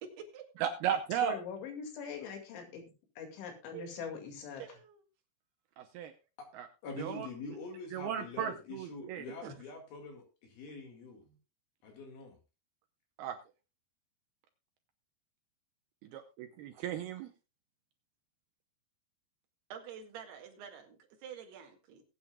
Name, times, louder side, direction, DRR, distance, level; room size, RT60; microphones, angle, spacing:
voice 1, 0.0-0.5 3.7-4.0 4.6-5.0 9.4-9.5 19.7-22.0, right 7 dB, 65° right, 3.8 m, -47 dB
voice 2, 0.6-1.4 5.8-6.1 6.5-6.7 7.0-7.3 7.9-9.3 13.2-13.4 16.1-17.3, right 9 dB, 80° right, 2.3 m, -35 dB
voice 3, 1.2-2.8 3.2-4.6, left 6 dB, 80° left, 4.6 m, -42 dB
voice 4, 6.8-11.4 11.8-12.4, left 3 dB, 60° left, 3.7 m, -45 dB
20.5 x 8.8 x 2.3 m
omnidirectional pair, 5.3 m